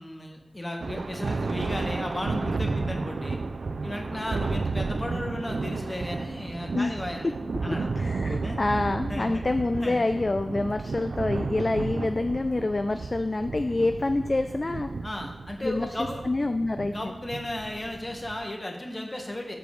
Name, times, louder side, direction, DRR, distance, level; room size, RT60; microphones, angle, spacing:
voice 1, 0.0-3.4 3.8-7.3 7.6-7.9 8.4-8.6 9.1-9.4 9.8-10.0 15.0-16.2 16.8-19.6, left 1 dB, 20° left, 2 dB, 1.4 m, -34 dB
Thunder, 0.8-18.5, right 3 dB, 75° right, 0.3 m, -32 dB
voice 2, 7.7-14.9 15.6-15.9 16.3-16.9, left 2 dB, 40° left, 8 dB, 0.3 m, -27 dB
7.0 x 4.7 x 6.4 m, 1.1 s
wide cardioid pair, 90°, 0 cm